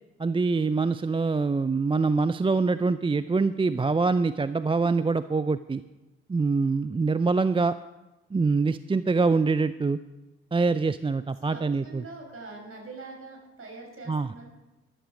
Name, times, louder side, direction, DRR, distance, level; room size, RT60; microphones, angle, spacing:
voice 1, 0.2-5.8 6.3-7.7 8.3-10.0 10.5-12.0 14.1-14.3, right 4 dB, 15° right, 14 dB, 0.5 m, -24 dB
voice 2, 11.4-14.5, right 3 dB, 40° right, 1 dB, 6.1 m, -43 dB
14.0 x 12.0 x 5.2 m, 1.1 s
hypercardioid pair, 40°, 34 cm